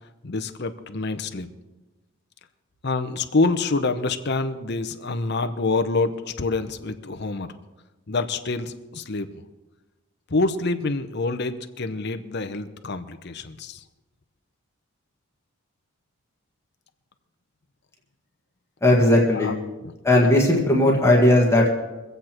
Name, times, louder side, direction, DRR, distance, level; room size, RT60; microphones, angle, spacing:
voice 1, 0.2-1.5 2.8-7.5 8.1-9.4 10.3-13.8 19.3-19.6 19.8-19.9, left 3 dB, 50° left, 8 dB, 0.9 m, -26 dB
voice 2, 18.8-19.6 20.0-21.7, left 1 dB, 15° left, -2 dB, 1.7 m, -17 dB
24.0 x 8.1 x 4.5 m, 1.1 s
head